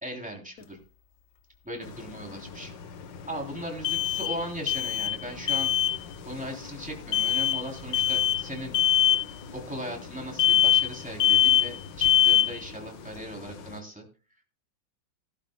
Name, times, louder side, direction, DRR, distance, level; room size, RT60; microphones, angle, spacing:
voice 1, 0.0-0.8 1.6-2.7 3.3-5.7 6.2-8.8 9.5-14.0, equal, 5° right, 0 dB, 3.1 m, -38 dB
sound 1, 0.6-0.7 3.8-4.4 4.7-5.2 5.5-6.0 7.1-7.6 7.9-8.4 8.7-9.2 10.4-10.9 11.2-11.8 12.0-12.6, left 11 dB, 60° left, 1.0 m, -22 dB
sound 2, 1.8-13.8, left 5 dB, 75° left, 1.7 m, -44 dB
18.5 x 11.5 x 2.2 m, 0.34 s
omnidirectional pair, 2.0 m